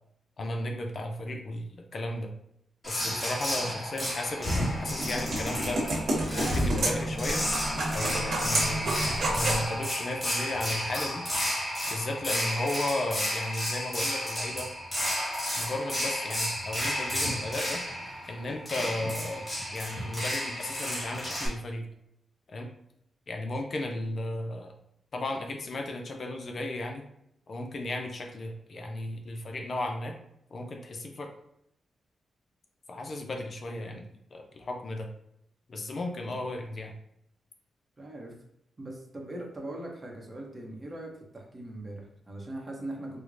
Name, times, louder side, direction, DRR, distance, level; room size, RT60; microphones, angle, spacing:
voice 1, 0.4-2.3 2.9-5.8 6.3-7.5 7.9-8.9 9.3-11.3 11.9-14.7 15.6-17.8 18.3-21.9 22.5-22.7 23.3-24.7 25.1-27.0 27.5-30.2 30.5-31.3 32.9-35.1 35.7-36.9, left 1 dB, 50° left, 3 dB, 0.4 m, -34 dB
sound 1, 2.8-21.5, equal, 15° left, 1.4 m, -32 dB
sound 2, 4.4-9.7, right 1 dB, 70° right, 1.1 m, -30 dB
voice 2, 38.0-38.4 38.8-43.2, right 1 dB, 30° right, 0 dB, 0.8 m, -40 dB
4.6 x 2.1 x 2.5 m, 0.75 s
cardioid pair, 110°, 0 cm